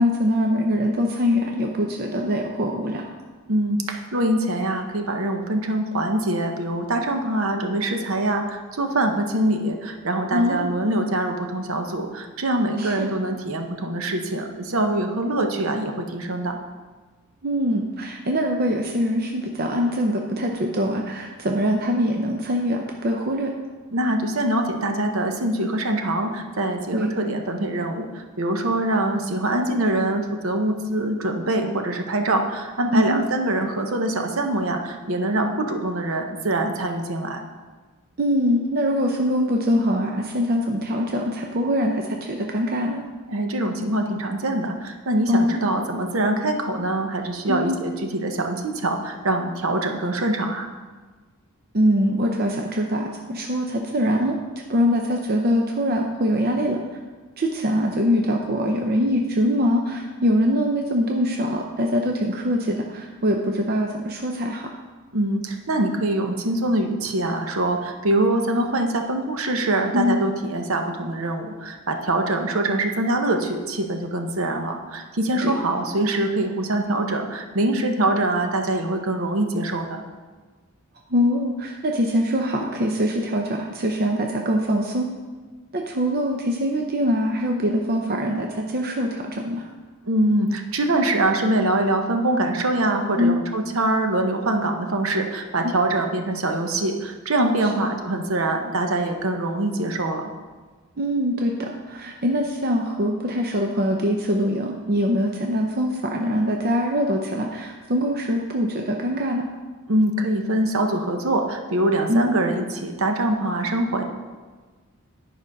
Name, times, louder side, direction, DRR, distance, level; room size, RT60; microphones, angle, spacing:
voice 1, 0.0-3.1 10.3-10.7 12.8-13.1 17.4-23.5 26.9-27.1 32.9-33.3 38.2-43.0 45.3-45.6 47.5-47.8 51.7-54.4 54.7-56.8 57.4-64.7 69.9-70.2 75.4-75.6 81.1-85.1 85.7-89.7 93.2-93.4 97.8-97.9 101.0-109.4 112.1-112.3, equal, 45° right, 2 dB, 0.6 m, -23 dB
voice 2, 3.5-16.6 23.9-37.4 43.3-50.7 65.1-80.0 90.1-100.3 109.9-114.0, right 1 dB, 70° right, 4 dB, 0.9 m, -24 dB
9.9 x 5.1 x 5.3 m, 1.4 s
head